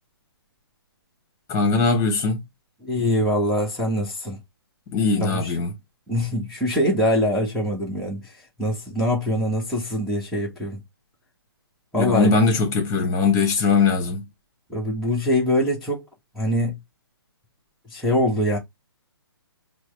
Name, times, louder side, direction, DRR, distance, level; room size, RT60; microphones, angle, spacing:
voice 1, 1.5-2.4 4.9-5.7 11.9-14.3, left 4 dB, 20° left, 1.4 m, -20 dB
voice 2, 2.8-4.4 5.2-5.5 6.1-8.3 8.6-10.8 11.9-12.3 14.7-16.1 16.3-16.8 17.9-18.6, left 1 dB, ahead, 1.1 m, -23 dB
4.5 x 2.1 x 3.3 m
figure-of-eight pair, 140°, 13 cm